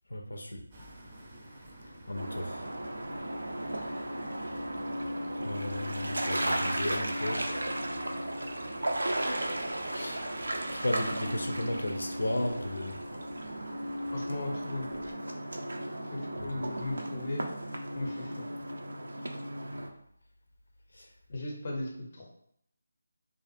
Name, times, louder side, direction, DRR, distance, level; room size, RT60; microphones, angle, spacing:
voice 1, 0.1-0.6 2.1-2.6 5.4-7.4 9.9-10.2 10.7-13.0 16.4-16.5 21.0-21.1, left 1 dB, 90° left, 3 dB, 0.4 m, -34 dB
sound 1, 0.7-15.1, right 1 dB, 25° right, 0.4 m, -53 dB
sound 2, 2.1-19.9, right 1 dB, 90° right, 0.4 m, -35 dB
voice 2, 14.1-14.9 16.1-17.4 18.0-18.5 21.3-22.3, left 2 dB, 35° left, -1 dB, 0.5 m, -37 dB
2.4 x 2.3 x 2.5 m, 0.69 s
figure-of-eight pair, 170°, 0 cm